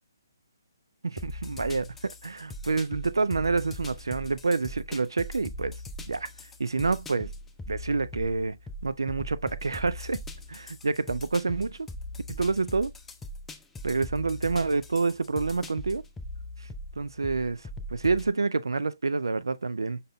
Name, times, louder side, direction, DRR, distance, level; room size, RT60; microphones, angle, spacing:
voice 1, 1.0-5.8 6.1-6.3 6.6-7.3 7.7-8.6 8.8-10.2 10.5-11.9 12.3-12.9 13.8-16.0 17.0-20.0, right 3 dB, 85° right, 0.4 m, -28 dB
sound 1, 1.2-18.3, left 1 dB, 10° left, 0.4 m, -41 dB
5.5 x 3.8 x 2.2 m
hypercardioid pair, 145°, 2 cm